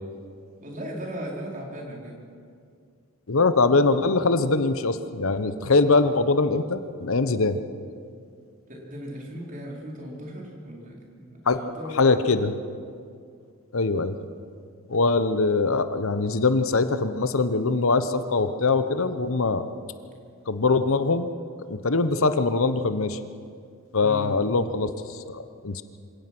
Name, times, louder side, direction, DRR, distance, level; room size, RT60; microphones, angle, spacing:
voice 1, 0.6-2.2 8.7-12.2 24.0-24.3, equal, 40° right, -2 dB, 4.4 m, -37 dB
voice 2, 3.3-7.6 11.5-11.6 11.9-12.5 13.7-14.1 14.9-19.6 20.5-21.3 21.7-23.2 23.9-25.8, left 3 dB, 70° left, 11 dB, 1.0 m, -22 dB
26.5 x 17.5 x 6.2 m, 2.3 s
head